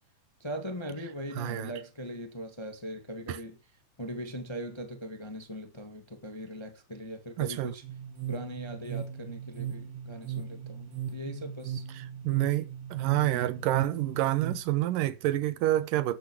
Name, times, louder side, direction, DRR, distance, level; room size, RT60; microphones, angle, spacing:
voice 1, 0.4-3.6 4.0-7.8 8.3-11.9 13.2-13.7, equal, 15° left, 1.0 m, -40 dB
voice 2, 1.4-1.7 3.3-3.4 7.4-7.7 12.3-16.2, right 15 dB, 90° right, 2.7 m, -28 dB
sound 1, 7.8-14.6, right 8 dB, 45° right, 2.4 m, -38 dB
12.5 x 10.5 x 4.8 m
omnidirectional pair, 3.7 m